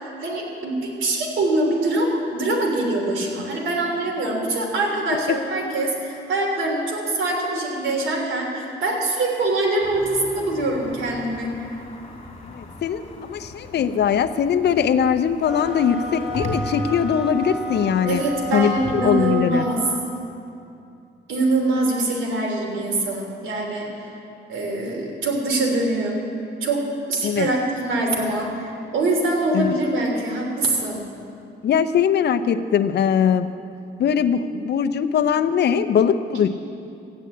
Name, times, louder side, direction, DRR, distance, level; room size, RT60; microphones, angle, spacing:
voice 1, 0.0-11.5 18.0-19.8 21.3-24.1 24.5-26.2 26.6-31.0, right 2 dB, 75° right, 0 dB, 3.4 m, -24 dB
sound 1, 9.8-19.3, left 1 dB, 30° left, 2.7 m, -38 dB
voice 2, 12.4-18.2 18.5-19.7 27.2-27.5 29.5-29.7 31.6-33.5 34.0-36.5, left 8 dB, 60° left, 10 dB, 0.7 m, -21 dB
sound 2, 15.4-20.1, equal, 5° right, 2.8 m, -32 dB
14.0 x 10.0 x 8.4 m, 2.6 s
cardioid pair, 90°, 20 cm